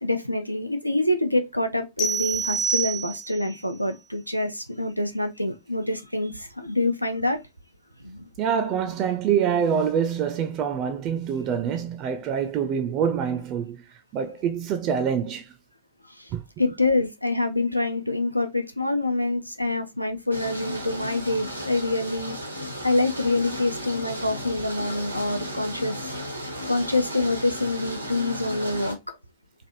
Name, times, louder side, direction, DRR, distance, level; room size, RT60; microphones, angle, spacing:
voice 1, 0.0-7.4 8.0-8.3 16.1-16.3 16.6-22.4 22.8-26.1 26.4-29.0, left 2 dB, 90° left, 0.4 m, -26 dB
sound 1, 2.0-3.5, right 5 dB, 30° left, 0.7 m, -27 dB
voice 2, 8.4-13.8 14.1-15.5 16.3-16.4, right 7 dB, 40° right, 0.4 m, -25 dB
sound 2, 20.3-28.9, equal, 90° right, 0.7 m, -35 dB
3.3 x 2.5 x 2.5 m
figure-of-eight pair, 90°, 0 cm